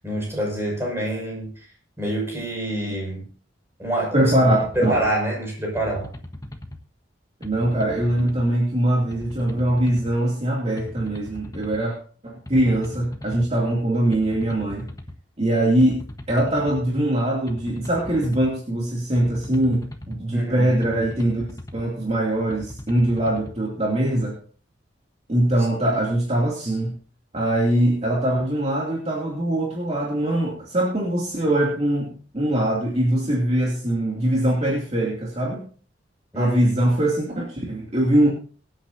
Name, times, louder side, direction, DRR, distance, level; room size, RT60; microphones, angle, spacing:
voice 1, 0.0-1.5 2.0-3.2 3.8-4.2 4.7-6.1 20.3-20.7 36.3-36.7, right 1 dB, 15° right, -2 dB, 6.0 m, -26 dB
voice 2, 4.1-4.9 7.4-12.0 12.2-14.9 15.4-16.0 16.3-21.5 21.7-24.3 25.3-27.0 27.3-35.6 36.4-38.3, right 1 dB, 35° right, -3 dB, 2.7 m, -22 dB
sound 1, 4.7-5.1 5.8-6.8 7.4-8.5 9.1-10.1 10.8-11.8 12.5-13.5 14.1-15.2 15.8-16.8 17.5-18.5 19.1-20.2 20.8-21.9 22.5-23.5, left 1 dB, 20° left, 1.2 m, -38 dB
23.0 x 9.1 x 2.7 m, 0.42 s
head